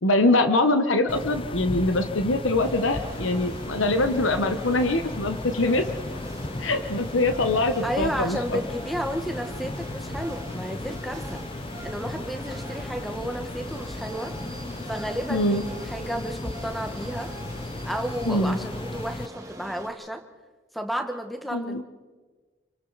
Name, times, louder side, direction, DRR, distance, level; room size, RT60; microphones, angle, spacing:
voice 1, 0.0-5.9 6.6-8.4 15.3-15.6 18.3-18.6 21.5-21.8, left 2 dB, 90° left, 8 dB, 1.1 m, -23 dB
sound 1, 1.1-19.3, left 2 dB, 25° left, 0.6 m, -35 dB
sound 2, 2.6-19.9, right 1 dB, 15° right, 1.9 m, -42 dB
voice 2, 7.8-11.4 11.8-14.4 14.9-17.3 17.8-20.2 20.7-21.8, equal, ahead, 6 dB, 1.3 m, -32 dB
28.5 x 24.0 x 4.1 m, 1.3 s
head